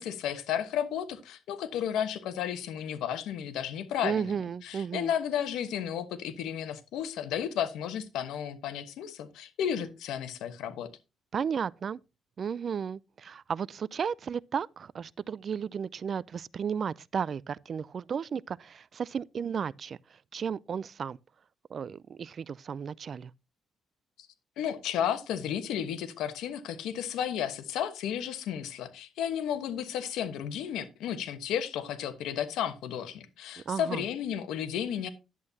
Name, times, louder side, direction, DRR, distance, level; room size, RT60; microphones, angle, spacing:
voice 1, 0.0-4.3 4.6-10.9 24.6-35.1, left 9 dB, 85° left, 1.1 m, -33 dB
voice 2, 4.0-5.1 11.3-12.0 12.4-20.0 20.3-21.2 21.7-23.3 33.7-34.0, right 7 dB, 50° right, 0.3 m, -34 dB
10.5 x 8.4 x 2.8 m
cardioid pair, 90°, 0 cm